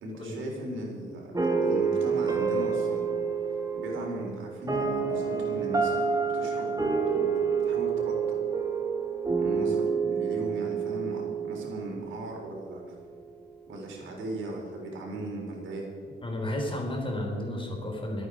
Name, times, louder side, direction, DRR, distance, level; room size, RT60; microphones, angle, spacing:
voice 1, 0.0-3.1 3.7-6.8 7.1-8.4 9.4-12.9 13.7-15.9, right 1 dB, 75° right, -1 dB, 3.8 m, -38 dB
sound 1, 1.3-12.5, right 5 dB, 20° right, 2.1 m, -28 dB
voice 2, 16.2-18.3, left 1 dB, 25° left, 1 dB, 3.9 m, -32 dB
24.0 x 8.8 x 4.9 m, 2.3 s
cardioid pair, 90°, 20 cm